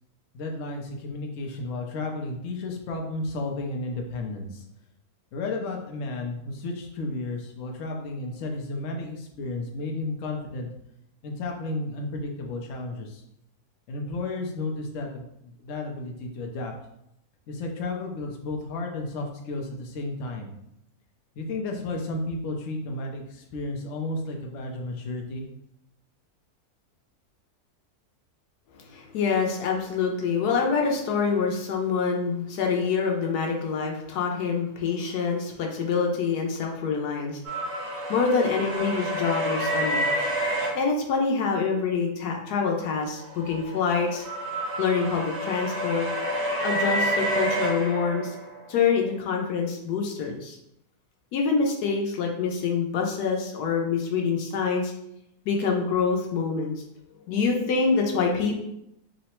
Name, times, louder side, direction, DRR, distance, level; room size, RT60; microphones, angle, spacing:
voice 1, 0.3-4.6 5.3-10.7 11.2-13.2 13.9-16.7 17.5-20.5 21.4-25.5, left 2 dB, 65° left, 2 dB, 0.9 m, -33 dB
voice 2, 28.8-37.4 38.1-40.0 40.7-44.2 44.8-46.1 46.6-48.3 48.7-50.6 51.3-54.9 55.4-56.7 57.3-58.5, left 5 dB, 90° left, 1 dB, 1.2 m, -26 dB
sound 1, 37.4-40.7 43.1-48.6, right 1 dB, 75° right, 1.5 m, -28 dB
3.7 x 2.1 x 4.3 m, 0.79 s
omnidirectional pair, 1.6 m